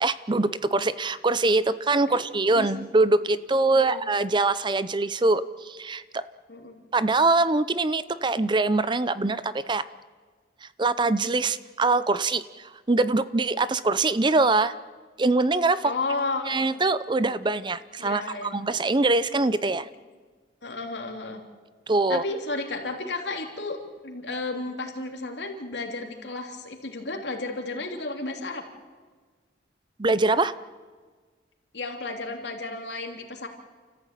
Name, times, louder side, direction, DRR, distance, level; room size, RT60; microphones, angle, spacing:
voice 1, 0.0-6.2 6.9-9.8 10.8-14.7 15.2-15.9 16.5-19.9 21.9-22.2 30.0-30.5, right 3 dB, 25° right, 15 dB, 0.6 m, -23 dB
voice 2, 3.7-4.0 6.5-6.8 15.8-16.7 18.0-18.6 20.6-21.4 22.1-23.8 24.0-28.6 31.7-33.5, left 3 dB, 75° left, 3 dB, 3.1 m, -33 dB
29.5 x 14.0 x 9.0 m, 1.5 s
head